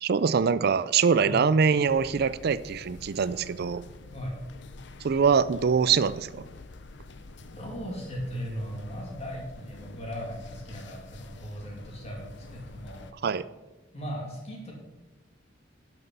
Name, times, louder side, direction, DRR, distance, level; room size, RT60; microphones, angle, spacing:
voice 1, 0.0-3.8 5.0-6.4 13.2-13.5, right 6 dB, 55° right, 16 dB, 0.4 m, -23 dB
sound 1, 1.9-13.1, left 3 dB, 65° left, 0.6 m, -47 dB
voice 2, 7.5-13.0 13.9-14.7, equal, 35° left, -1 dB, 2.8 m, -37 dB
12.0 x 6.1 x 5.5 m, 1.1 s
head